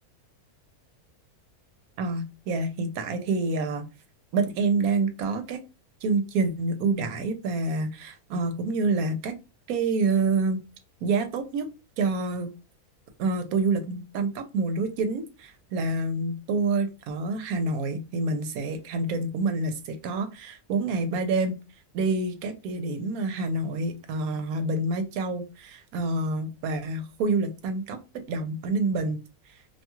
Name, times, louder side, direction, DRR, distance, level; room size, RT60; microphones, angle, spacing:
voice 1, 2.0-3.9 4.3-5.6 6.0-9.4 9.7-10.6 11.0-11.7 12.0-12.5 13.2-21.5 21.9-29.2, right 3 dB, 80° right, 8 dB, 1.0 m, -27 dB
2.7 x 2.3 x 2.9 m, 0.28 s
omnidirectional pair, 1.5 m